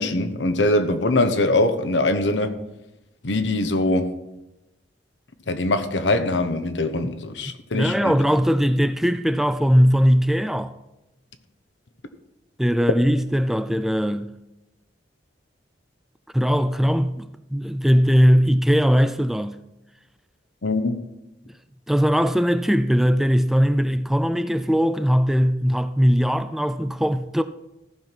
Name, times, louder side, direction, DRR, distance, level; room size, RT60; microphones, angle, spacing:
voice 1, 0.0-2.5 3.2-4.1 5.5-8.2 20.6-21.0, left 2 dB, 75° left, 1.0 m, -22 dB
voice 2, 7.7-10.7 12.6-14.3 16.3-19.6 21.9-27.4, equal, ahead, 0.3 m, -20 dB
14.5 x 5.9 x 4.5 m
head